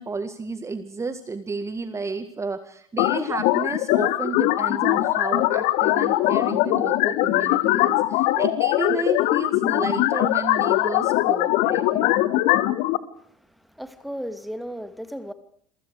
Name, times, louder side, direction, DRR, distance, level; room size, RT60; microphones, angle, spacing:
voice 1, 0.0-12.3, right 4 dB, 15° right, 1.9 m, -32 dB
sound 1, 3.0-13.0, left 16 dB, 50° left, 1.8 m, -21 dB
voice 2, 13.3-15.3, equal, ahead, 2.5 m, -35 dB
28.5 x 23.5 x 5.0 m
figure-of-eight pair, 70°, 17 cm